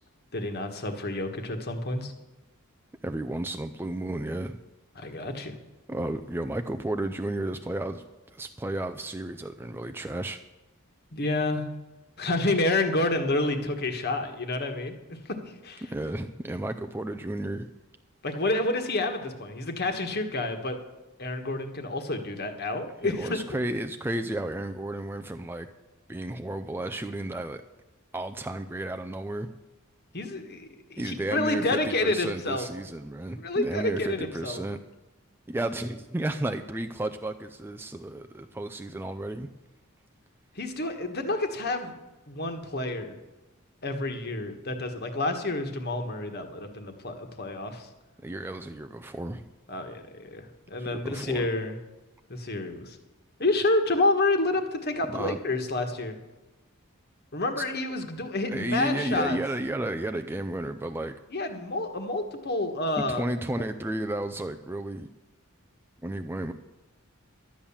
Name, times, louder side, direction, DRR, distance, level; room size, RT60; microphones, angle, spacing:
voice 1, 0.3-2.1 5.0-5.6 11.1-11.6 12.2-15.4 15.6-15.8 18.2-20.8 21.2-23.4 30.1-32.7 33.4-34.6 40.5-41.9 42.3-43.2 43.8-47.9 49.7-51.8 52.3-53.0 53.4-56.2 57.3-59.4 61.3-63.3, left 2 dB, 45° left, 6 dB, 1.5 m, -29 dB
voice 2, 3.0-4.6 5.9-8.0 8.3-10.4 15.8-17.7 23.0-25.7 26.1-27.6 28.1-29.5 31.0-34.8 35.5-39.5 48.2-49.5 50.8-51.5 55.0-55.4 58.5-61.2 63.0-65.1 66.0-66.5, right 1 dB, 10° right, 7 dB, 0.4 m, -33 dB
12.5 x 8.7 x 7.2 m, 1.1 s
head